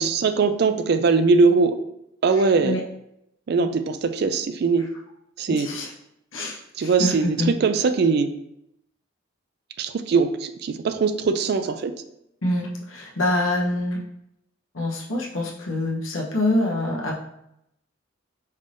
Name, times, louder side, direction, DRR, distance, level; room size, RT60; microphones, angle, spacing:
voice 1, 0.0-1.8 2.2-2.8 3.5-4.9 5.4-5.7 6.8-8.3 9.8-11.9, right 4 dB, 55° right, 10 dB, 0.3 m, -21 dB
voice 2, 5.5-5.9 6.3-7.5 12.4-14.0 14.7-17.2, left 1 dB, 90° left, -2 dB, 0.9 m, -25 dB
5.4 x 3.3 x 2.6 m, 0.80 s
head